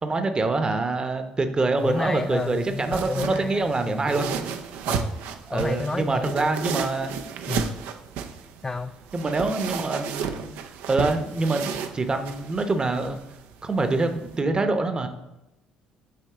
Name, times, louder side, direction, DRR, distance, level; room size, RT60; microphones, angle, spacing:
voice 1, 0.0-4.3 5.5-7.1 9.1-10.5 10.9-13.2 13.6-15.1, right 3 dB, 30° right, 7 dB, 0.9 m, -25 dB
voice 2, 1.8-4.3 4.9-6.7 7.5-7.8 8.6-8.9, left 3 dB, 25° left, 7 dB, 0.4 m, -31 dB
sound 1, 1.8-14.4, right 7 dB, 75° right, 0.5 m, -34 dB
8.7 x 3.0 x 3.7 m, 0.91 s
hypercardioid pair, 55°, 3 cm